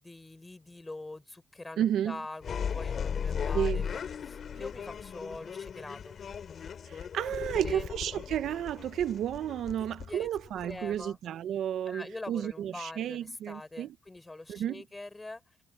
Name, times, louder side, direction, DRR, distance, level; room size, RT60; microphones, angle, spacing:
voice 1, 0.0-6.2 7.5-7.9 10.1-10.3 10.6-11.2 11.9-15.4, left 2 dB, 15° left, 5.1 m, -44 dB
voice 2, 1.8-2.2 3.5-3.9 6.9-13.9 14.5-14.8, right 10 dB, 75° right, 0.6 m, -32 dB
sound 1, 2.4-11.0, left 7 dB, 55° left, 2.3 m, -37 dB
cardioid pair, 90°, 0 cm